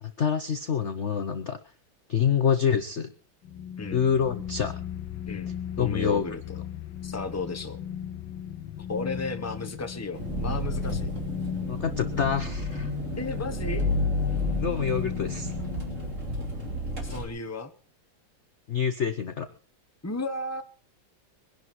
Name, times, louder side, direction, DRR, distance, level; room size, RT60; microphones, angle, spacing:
voice 1, 0.0-1.6 2.1-3.1 3.9-4.8 5.8-6.2 11.7-12.9 14.6-15.5 18.7-19.5, left 7 dB, 50° left, 9 dB, 1.0 m, -26 dB
sound 1, 3.4-16.2, left 8 dB, 80° left, 1.7 m, -36 dB
voice 2, 5.8-6.6 7.0-7.8 8.9-11.1 13.2-13.8 17.0-17.7 20.0-20.6, left 3 dB, 10° left, 7 dB, 1.1 m, -34 dB
Engine, 10.1-17.2, left 1 dB, 40° right, 3.4 m, -31 dB
22.5 x 11.0 x 4.6 m, 0.39 s
omnidirectional pair, 2.1 m